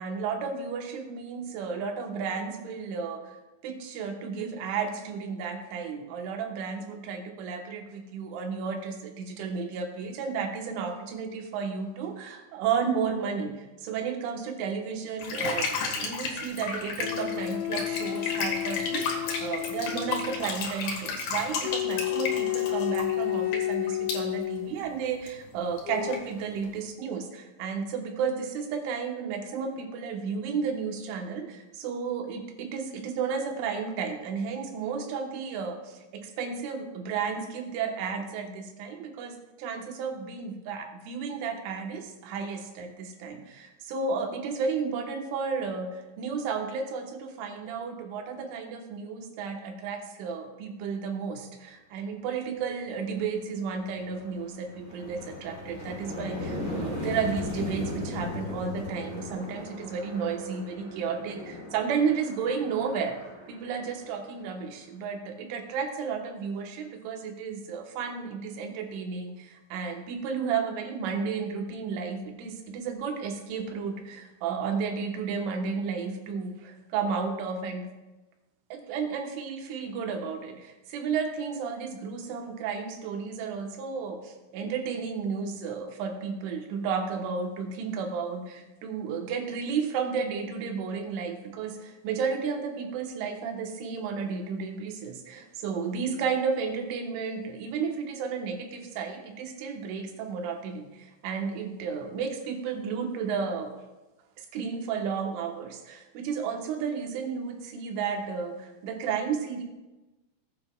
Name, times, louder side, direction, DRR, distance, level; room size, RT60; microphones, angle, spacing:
voice 1, 0.0-3.4 3.6-61.4 61.7-63.2 63.5-77.9 78.7-103.7 104.4-109.6, right 5 dB, 90° right, 3 dB, 3.6 m, -33 dB
sound 1, 15.2-24.2 24.8-24.9 25.1-25.4 25.8-25.9 26.1-26.7, left 4 dB, 60° left, 3.1 m, -33 dB
sound 2, 17.0-20.5 21.6-24.7 25.8-26.2, left 14 dB, 85° left, 2.4 m, -31 dB
sound 3, 53.1-53.2 53.7-64.4, left 2 dB, 30° left, 5.1 m, -38 dB
20.0 x 9.5 x 2.3 m, 1.1 s
omnidirectional pair, 5.4 m